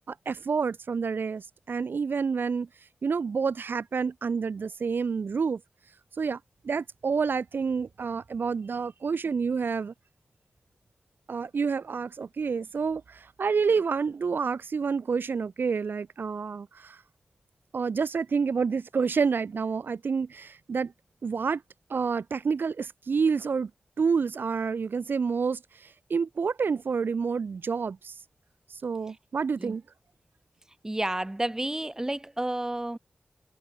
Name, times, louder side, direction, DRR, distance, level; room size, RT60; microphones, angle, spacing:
voice 1, 0.1-2.7 3.0-5.6 6.2-6.4 6.6-9.9 11.3-17.0 17.7-20.9 21.2-21.6 21.9-23.7 24.0-28.1 28.7-29.8, right 5 dB, 90° right, 1.6 m, -28 dB
voice 2, 30.8-33.0, right 1 dB, 15° right, 5.5 m, -30 dB
wide cardioid pair, 110°, 3 cm